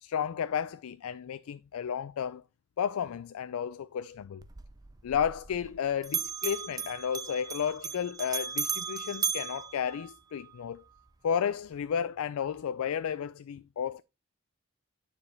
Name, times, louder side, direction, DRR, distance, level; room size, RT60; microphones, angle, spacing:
voice 1, 0.0-2.4 2.8-4.4 5.0-10.8 11.2-14.0, left 8 dB, 80° left, 0.3 m, -32 dB
Bell, 4.4-5.8 6.0-10.5, right 7 dB, 15° right, 0.5 m, -36 dB
9.5 x 5.0 x 3.9 m
head